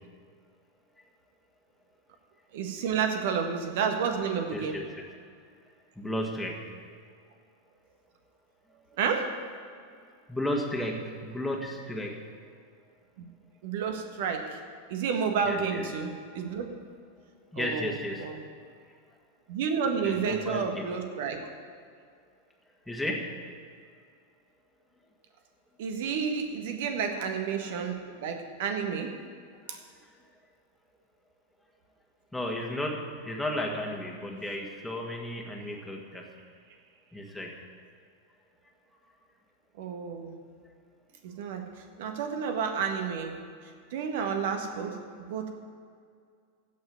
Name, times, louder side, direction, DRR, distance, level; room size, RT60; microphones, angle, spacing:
voice 1, 2.5-4.8 9.0-9.3 13.2-13.3 13.6-14.6 14.9-16.7 17.6-17.9 18.2-18.4 19.5-21.5 25.8-29.1 29.7-29.8 39.8-40.4 41.2-41.7 42.0-43.4 43.9-45.0 45.3-45.5, right 6 dB, 55° right, 5 dB, 1.6 m, -30 dB
voice 2, 4.5-5.1 6.0-6.6 10.3-12.1 15.5-15.8 17.5-18.3 20.0-20.9 22.9-23.3 32.3-36.2 37.1-37.5, left 1 dB, 5° left, -1 dB, 1.8 m, -33 dB
15.5 x 6.2 x 9.3 m, 2.2 s
figure-of-eight pair, 90°, 0 cm